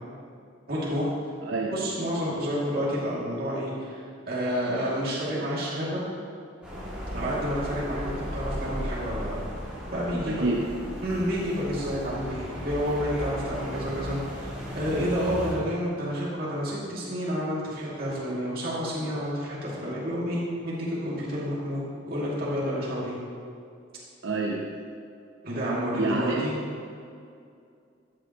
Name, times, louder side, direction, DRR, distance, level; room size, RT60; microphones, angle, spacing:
voice 1, 0.7-1.1 1.7-6.0 7.1-9.4 9.9-10.5 11.0-23.2 25.4-26.6, equal, 50° right, -7 dB, 2.5 m, -29 dB
voice 2, 1.4-1.7 10.3-11.0 24.2-24.7 25.9-26.4, right 3 dB, 80° right, -2 dB, 0.9 m, -28 dB
sound 1, 6.6-15.5, equal, 5° right, 2.5 m, -36 dB
13.5 x 9.4 x 3.0 m, 2.4 s
head